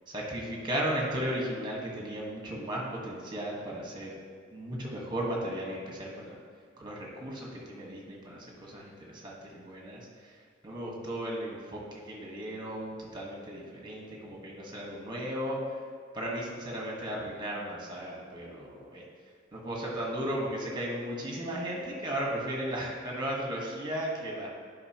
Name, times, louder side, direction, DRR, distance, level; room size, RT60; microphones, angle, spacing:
voice 1, 0.1-4.1 4.5-6.4 6.8-10.0 10.6-15.6 16.1-19.0 19.5-24.5, right 1 dB, 25° right, -2 dB, 1.4 m, -35 dB
11.0 x 5.4 x 3.0 m, 2.1 s
head